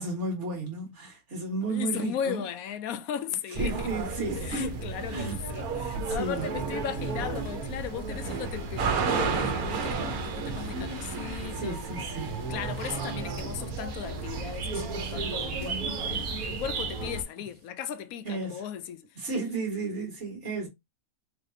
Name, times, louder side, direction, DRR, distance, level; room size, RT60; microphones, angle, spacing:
voice 1, 0.0-2.4 3.6-4.7 5.1-5.4 5.9-6.5 11.5-12.4 18.3-18.6 19.2-20.7, right 3 dB, 55° right, 2.0 m, -33 dB
voice 2, 1.7-3.9 4.4-11.8 12.5-19.2, left 9 dB, 75° left, 1.0 m, -37 dB
sound 1, 3.5-17.2, right 4 dB, 85° right, 1.4 m, -32 dB
sound 2, 7.6-13.4, right 1 dB, ahead, 1.8 m, -51 dB
4.1 x 3.4 x 2.7 m
omnidirectional pair, 1.5 m